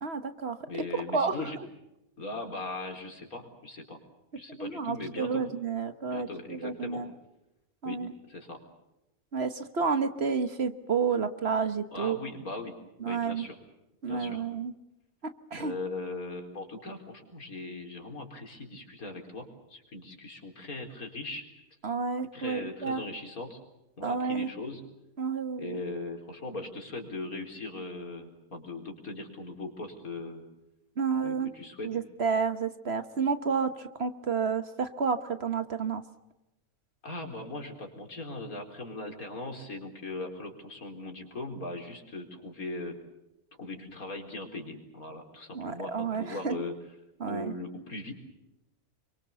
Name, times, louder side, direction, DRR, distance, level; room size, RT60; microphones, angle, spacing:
voice 1, 0.0-0.6 1.1-1.5 4.6-7.1 7.8-8.1 9.3-12.2 13.0-13.5 14.0-14.7 15.5-15.7 21.8-23.0 24.0-24.5 25.2-25.8 31.0-31.5 31.8-36.0 45.5-46.5 47.2-47.5, right 5 dB, 45° right, 10 dB, 1.5 m, -30 dB
voice 2, 0.7-1.6 2.2-4.0 4.3-5.4 6.0-7.0 7.8-8.6 11.9-12.7 13.0-13.6 14.1-14.4 15.6-21.4 22.3-23.6 24.0-24.8 25.6-30.4 31.2-32.0 37.0-43.0 43.6-46.8 47.3-48.1, left 2 dB, 80° left, 2 dB, 4.5 m, -39 dB
28.0 x 24.0 x 7.0 m, 0.92 s
omnidirectional pair, 1.5 m